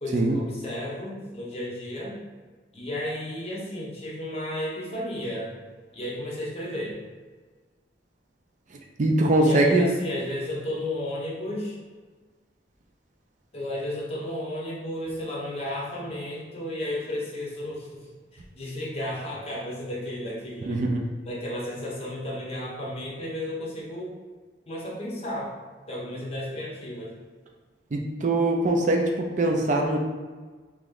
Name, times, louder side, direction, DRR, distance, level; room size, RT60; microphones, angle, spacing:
voice 1, 0.0-2.2 2.7-5.5 5.9-7.0 9.4-11.8 13.5-18.1 18.3-20.8 21.2-24.2 24.7-25.5 25.9-27.2, left 1 dB, 35° left, -4 dB, 0.9 m, -33 dB
voice 2, 9.0-9.8 20.7-20.9 27.9-30.0, right 2 dB, 45° right, 2 dB, 0.4 m, -22 dB
3.1 x 2.9 x 3.7 m, 1.4 s
head